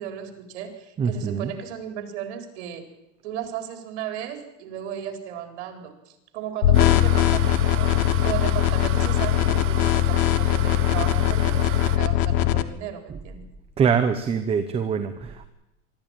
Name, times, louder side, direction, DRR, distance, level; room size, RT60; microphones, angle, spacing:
voice 1, 0.0-2.9 3.2-13.4, right 9 dB, 60° right, 5 dB, 4.2 m, -35 dB
voice 2, 1.0-1.5 13.8-15.5, right 6 dB, 15° right, 8 dB, 0.9 m, -24 dB
sound 1, 6.6-12.6, left 13 dB, 45° left, 1.2 m, -21 dB
sound 2, 6.7-12.0, right 13 dB, 35° right, 1.3 m, -35 dB
23.0 x 14.0 x 9.0 m, 0.91 s
supercardioid pair, 160°, 38 cm